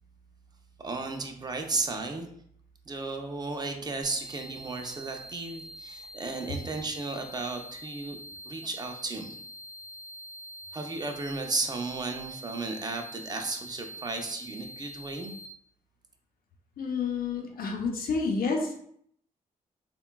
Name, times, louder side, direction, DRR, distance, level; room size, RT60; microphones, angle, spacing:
voice 1, 0.8-2.3 2.9-8.2 8.4-9.3 10.7-15.3, right 3 dB, 25° right, 3 dB, 0.5 m, -34 dB
sound 1, 4.0-15.5, right 1 dB, 45° right, 0.8 m, -45 dB
voice 2, 16.8-18.7, left 4 dB, 75° left, 1 dB, 0.6 m, -29 dB
3.6 x 2.2 x 2.2 m, 0.67 s
cardioid pair, 85°, 15 cm